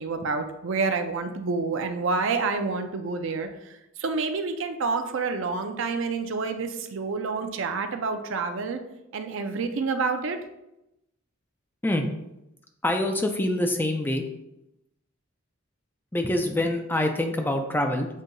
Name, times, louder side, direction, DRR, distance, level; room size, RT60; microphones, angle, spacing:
voice 1, 0.0-3.5 4.0-8.8 9.1-10.4, right 4 dB, 60° right, 7 dB, 0.5 m, -28 dB
voice 2, 12.8-14.2 16.1-18.1, left 1 dB, 10° left, 3 dB, 0.3 m, -25 dB
7.4 x 2.7 x 2.6 m, 0.87 s
head